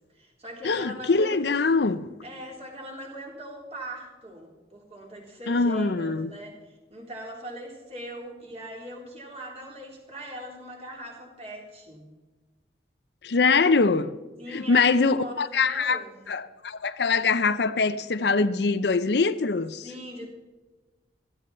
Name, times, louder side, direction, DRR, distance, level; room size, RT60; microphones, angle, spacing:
voice 1, 0.1-1.4 2.2-12.1 14.4-16.3 19.8-20.3, equal, 35° right, 3.8 m, -41 dB
voice 2, 0.6-2.2 5.5-6.3 13.2-14.2 14.5-19.8, left 4 dB, 65° left, 0.6 m, -23 dB
17.0 x 13.5 x 4.4 m
head